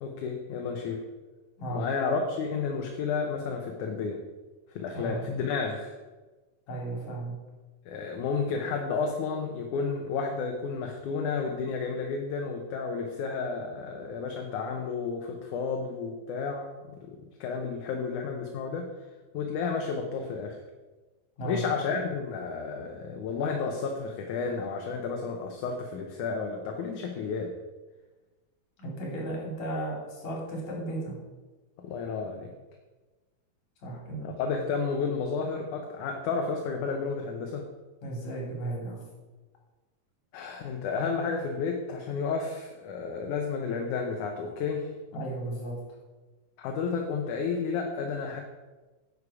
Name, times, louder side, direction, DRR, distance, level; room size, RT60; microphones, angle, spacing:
voice 1, 0.0-1.0 1.7-4.2 4.7-6.0 7.9-16.7 17.0-18.9 19.3-20.6 21.4-27.5 31.8-32.5 34.2-37.6 40.3-44.9 46.6-48.4, left 5 dB, 80° left, 3 dB, 2.4 m, -31 dB
voice 2, 6.7-7.3 21.4-21.6 28.8-31.2 33.8-34.3 38.0-39.0 45.1-45.8, right 1 dB, 65° left, -1 dB, 4.1 m, -34 dB
10.5 x 8.3 x 4.8 m, 1.2 s
omnidirectional pair, 3.5 m